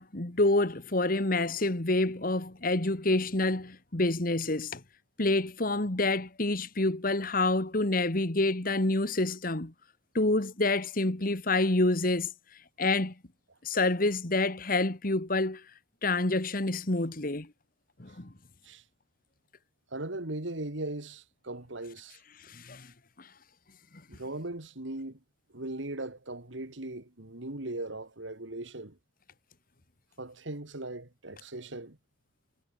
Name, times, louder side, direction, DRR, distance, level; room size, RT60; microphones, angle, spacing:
voice 1, 0.0-4.8 5.2-9.7 10.1-12.3 12.8-13.1 13.6-15.6 16.0-17.5 18.0-18.3 22.4-22.9 23.2-23.3, left 2 dB, 50° left, 1.8 m, -27 dB
voice 2, 19.9-22.2 24.1-25.2 25.5-29.0 30.2-32.0, right 2 dB, 85° right, 2.6 m, -38 dB
head